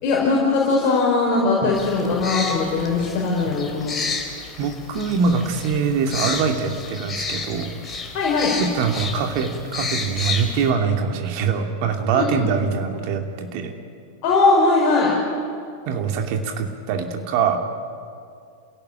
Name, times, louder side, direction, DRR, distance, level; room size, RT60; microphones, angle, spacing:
voice 1, 0.0-3.9 8.1-8.5 12.1-12.4 14.2-15.1, left 3 dB, 40° left, -3 dB, 5.0 m, -20 dB
sound 1, 1.7-10.7, left 4 dB, 20° left, 3.9 m, -31 dB
voice 2, 4.6-7.7 8.6-13.7 15.9-17.6, right 5 dB, 45° right, 4 dB, 2.7 m, -23 dB
28.0 x 17.0 x 8.8 m, 2.3 s
figure-of-eight pair, 90°, 0 cm